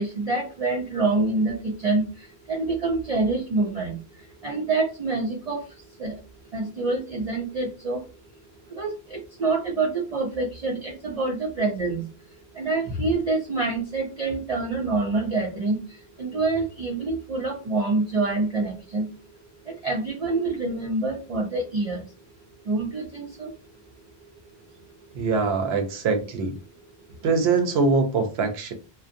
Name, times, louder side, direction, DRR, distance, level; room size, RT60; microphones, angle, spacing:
voice 1, 0.0-6.2 6.5-8.1 8.7-12.1 12.5-19.1 19.6-22.0 22.6-23.5 24.2-24.3 27.1-27.2, right 3 dB, 50° right, 0.5 m, -26 dB
voice 2, 25.2-26.6 27.2-28.7, right 4 dB, 85° right, 0.8 m, -23 dB
2.5 x 2.1 x 2.5 m
omnidirectional pair, 1.0 m